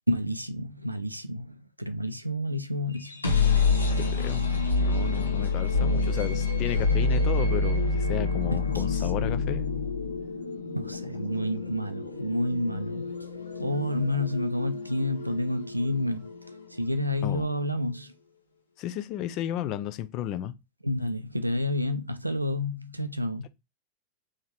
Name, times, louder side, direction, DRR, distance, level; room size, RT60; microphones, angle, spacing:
voice 1, 0.1-3.2 8.5-9.4 10.7-13.3 13.6-16.3 16.7-18.1 20.8-23.5, left 1 dB, 85° right, 0.5 m, -30 dB
sound 1, 2.9-16.8, left 3 dB, 85° left, 1.0 m, -28 dB
voice 2, 4.0-4.5 4.8-9.9 17.2-17.5 18.8-20.5, left 12 dB, 40° left, 0.5 m, -33 dB
3.6 x 3.1 x 4.2 m
figure-of-eight pair, 90°, 0 cm